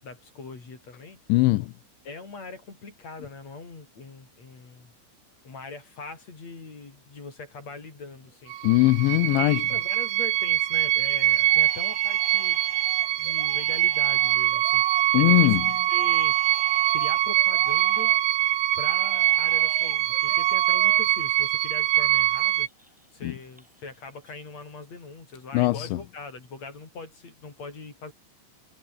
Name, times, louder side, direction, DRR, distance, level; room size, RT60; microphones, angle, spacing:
voice 1, 0.0-1.2 2.0-4.9 5.4-8.5 9.4-12.6 13.2-15.6 15.9-16.4 16.9-18.2 18.8-22.7 23.1-28.1, left 4 dB, 35° left, 5.7 m, -41 dB
voice 2, 1.3-1.7 8.6-9.7 15.1-15.7 23.2-23.3 25.5-25.9, left 20 dB, 85° left, 2.9 m, -20 dB
Crying sobbing, 8.3-8.4 8.8-9.3 9.7-10.5 10.8-11.0 11.4-18.4 18.8-22.2 22.4-24.0 24.2-24.8, equal, ahead, 3.9 m, -45 dB
sound 1, 8.5-22.7, right 14 dB, 65° right, 2.9 m, -23 dB
omnidirectional pair, 5.7 m